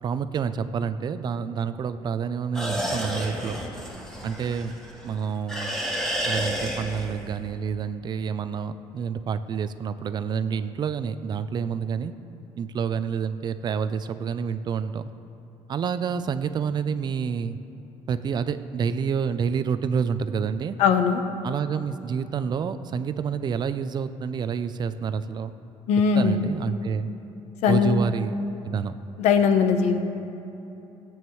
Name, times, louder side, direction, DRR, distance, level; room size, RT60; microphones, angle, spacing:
voice 1, 0.0-3.6 4.2-4.7 5.0-5.7 6.3-12.1 12.6-15.0 15.7-17.6 18.1-20.8 21.4-25.5 26.2-27.1 27.7-28.3 28.6-28.9, right 6 dB, 40° right, 12 dB, 0.5 m, -28 dB
sound 1, 2.5-5.1 5.5-7.3, equal, 5° left, 1.7 m, -30 dB
voice 2, 20.8-21.2 25.9-26.4 27.6-28.0 29.2-30.0, left 6 dB, 80° left, 7 dB, 0.8 m, -20 dB
17.5 x 8.8 x 3.1 m, 3.0 s
cardioid pair, 125°, 11 cm